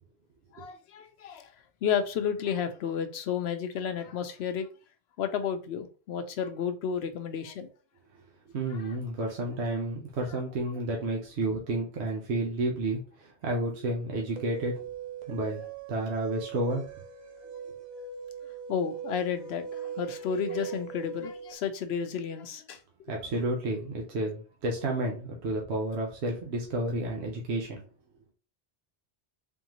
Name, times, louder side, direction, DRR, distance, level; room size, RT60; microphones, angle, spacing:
voice 1, 0.5-4.7 5.2-7.7 8.7-9.0 18.4-22.8, left 7 dB, 75° left, 0.9 m, -32 dB
voice 2, 8.5-14.8 15.3-15.6 15.9-16.8 23.1-27.8, right 2 dB, 75° right, 1.1 m, -31 dB
sound 1, 14.4-21.5, right 6 dB, 45° right, 0.8 m, -40 dB
3.6 x 3.5 x 3.0 m
omnidirectional pair, 1.1 m